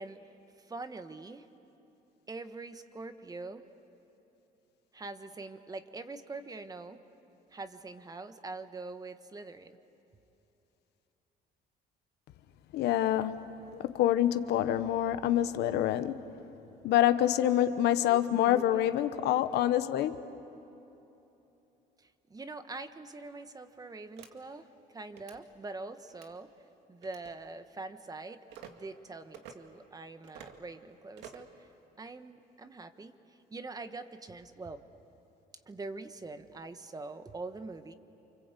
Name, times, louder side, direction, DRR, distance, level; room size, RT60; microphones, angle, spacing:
voice 1, 0.0-1.5 2.3-3.6 4.9-7.0 7.5-9.8 18.0-18.9 22.0-26.5 26.9-28.4 28.7-31.7 32.0-34.8 35.7-37.9, right 3 dB, 20° right, 1.3 m, -44 dB
voice 2, 12.7-13.4 13.8-16.2 16.8-20.2, left 12 dB, 80° left, 1.0 m, -26 dB
sound 1, 24.2-24.3 25.1-25.4 26.1-26.3 27.0-27.3 28.5-28.7 29.3-29.5 30.2-30.6 31.2-31.5, right 8 dB, 90° right, 2.0 m, -49 dB
28.5 x 25.5 x 8.2 m
cardioid pair, 110°, 17 cm